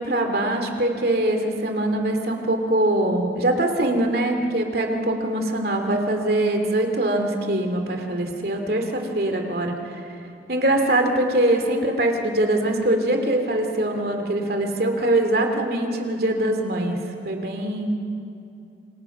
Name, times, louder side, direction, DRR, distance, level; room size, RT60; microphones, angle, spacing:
voice 1, 0.0-10.0 10.5-17.0 17.2-17.9, right 1 dB, 55° right, 4 dB, 2.7 m, -23 dB
28.5 x 27.0 x 6.0 m, 2.6 s
head